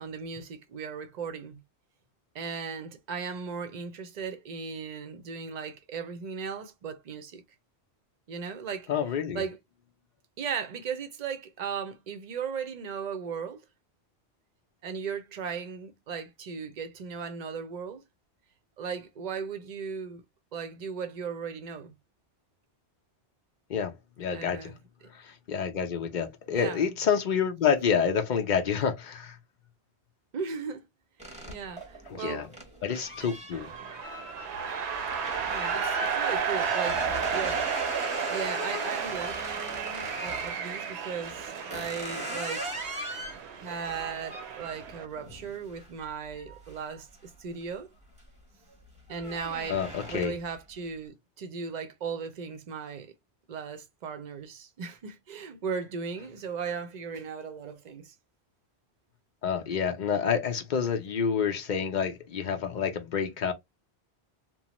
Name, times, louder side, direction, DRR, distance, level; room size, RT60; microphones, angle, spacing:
voice 1, 0.0-1.6 2.3-7.4 8.3-8.9 9.3-9.6 10.4-13.6 14.8-18.0 18.8-20.2 20.5-21.9 24.3-24.8 26.5-26.9 30.3-30.8 31.5-32.5 35.4-37.0 37.3-37.7 38.3-42.8 43.6-47.9 49.1-49.8 50.1-53.1 53.5-58.1, right 6 dB, 50° right, 0.6 m, -37 dB
voice 2, 8.9-9.4 23.7-24.7 25.1-29.4 32.1-32.5 32.8-33.7 49.7-50.3 59.4-63.5, left 7 dB, 50° left, 0.7 m, -28 dB
sound 1, 31.2-40.6 41.2-47.6 48.0-48.4 48.7-50.6, right 1 dB, 5° right, 0.8 m, -40 dB
sound 2, 33.5-45.1, right 6 dB, 75° right, 0.8 m, -33 dB
3.0 x 2.0 x 2.9 m
omnidirectional pair, 1.1 m